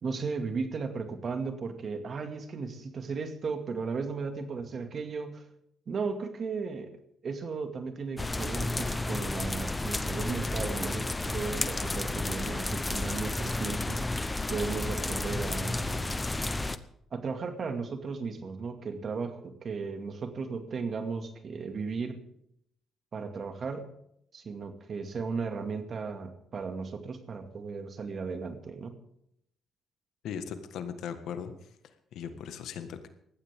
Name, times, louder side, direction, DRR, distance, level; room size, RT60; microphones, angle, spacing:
voice 1, 0.0-5.5 5.9-14.0 14.5-16.2 17.1-22.2 23.1-23.9 24.3-28.9, right 4 dB, 50° right, 7 dB, 2.2 m, -35 dB
sound 1, 8.2-16.8, left 2 dB, 15° left, 0.8 m, -32 dB
voice 2, 30.2-31.7 32.1-33.1, left 7 dB, 80° left, 9 dB, 1.6 m, -38 dB
19.0 x 14.5 x 3.7 m, 0.73 s
cardioid pair, 90°, 0 cm